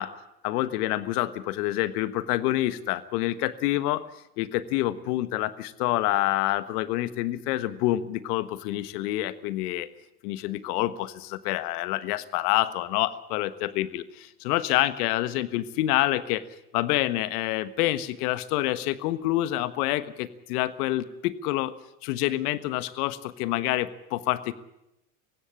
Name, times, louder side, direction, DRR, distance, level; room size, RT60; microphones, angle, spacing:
voice 1, 0.4-4.1 4.4-9.9 10.2-16.4 16.7-21.7 22.0-24.5, left 15 dB, 75° left, 14 dB, 1.5 m, -27 dB
18.5 x 15.5 x 9.9 m, 0.84 s
supercardioid pair, 105°, 46 cm